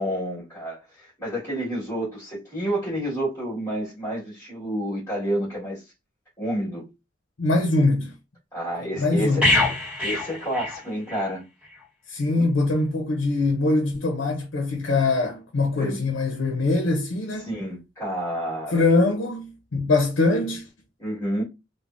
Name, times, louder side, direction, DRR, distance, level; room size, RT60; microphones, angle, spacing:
voice 1, 0.0-5.8 6.4-6.9 8.5-9.5 10.0-11.4 12.3-12.5 15.8-16.0 17.4-18.8 21.0-21.4, equal, 20° left, 1.5 m, -29 dB
voice 2, 7.4-8.1 9.0-9.6 12.1-17.5 18.7-20.7, left 2 dB, 75° left, 0.6 m, -23 dB
sound 1, 9.4-11.3 11.6-11.8, left 2 dB, 5° right, 1.1 m, -24 dB
3.3 x 2.0 x 2.5 m
head